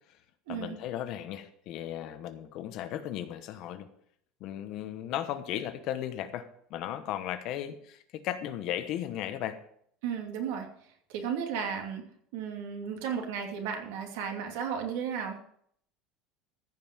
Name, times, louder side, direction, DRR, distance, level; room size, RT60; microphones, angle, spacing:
voice 1, 0.5-3.9 4.4-9.6, left 11 dB, 45° left, 10 dB, 1.1 m, -36 dB
voice 2, 10.0-10.7 11.1-12.0 12.3-15.5, right 7 dB, 75° right, 3 dB, 2.7 m, -34 dB
15.0 x 5.6 x 8.0 m, 0.67 s
cardioid pair, 180°, 0 cm